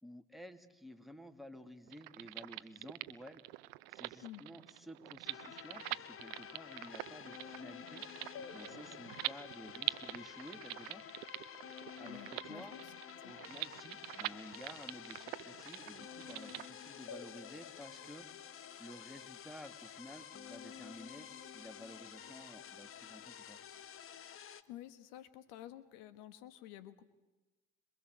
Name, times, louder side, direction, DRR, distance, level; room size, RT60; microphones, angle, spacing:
voice 1, 0.0-3.4 3.9-8.0 8.5-11.0 12.0-12.7 13.2-18.3 18.8-23.6, equal, ahead, 10 dB, 2.6 m, -53 dB
sound 1, 1.9-16.7, right 22 dB, 80° right, 0.9 m, -45 dB
sound 2, 5.2-24.6, left 8 dB, 50° left, 1.5 m, -50 dB
voice 2, 12.0-12.9 13.2-13.3 24.7-27.0, left 13 dB, 80° left, 15 dB, 1.5 m, -51 dB
26.5 x 22.0 x 8.1 m, 1.1 s
hypercardioid pair, 65°, 29 cm